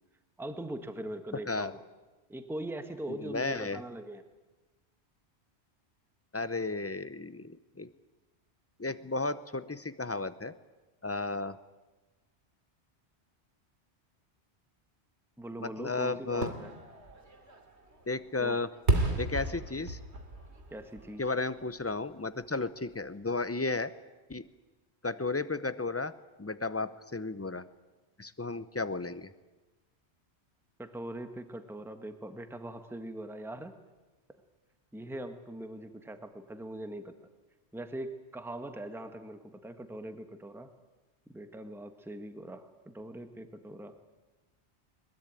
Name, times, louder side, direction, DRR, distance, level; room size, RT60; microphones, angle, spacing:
voice 1, 0.4-1.8 2.3-4.2 15.4-16.8 18.4-18.6 20.7-21.2 30.8-33.8 34.9-37.2 37.7-40.7 41.3-44.0, right 1 dB, ahead, 8 dB, 1.3 m, -41 dB
voice 2, 3.1-3.8 6.3-7.9 8.8-10.5 11.0-11.6 15.6-16.5 18.1-18.7 19.2-20.0 21.2-23.9 24.3-24.4 25.0-26.1 26.4-27.6 28.2-29.3, left 3 dB, 15° left, 13 dB, 0.6 m, -33 dB
Fireworks, 16.3-22.1 22.5-22.6, right 2 dB, 75° right, 2.9 m, -34 dB
22.0 x 21.0 x 9.0 m, 1.2 s
omnidirectional pair, 1.1 m